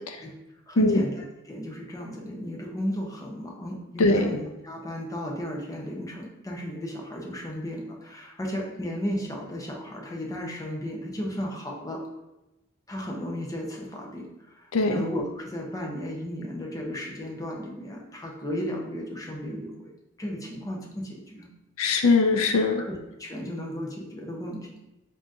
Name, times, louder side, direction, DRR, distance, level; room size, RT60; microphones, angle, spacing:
voice 1, 0.7-12.1 12.9-14.3 14.6-19.9 20.2-21.5 22.8-24.7, equal, 15° left, -1 dB, 0.6 m, -34 dB
voice 2, 4.0-4.3 14.7-15.0 21.8-22.8, left 3 dB, 85° left, 4 dB, 0.4 m, -21 dB
3.8 x 3.7 x 2.6 m, 0.95 s
head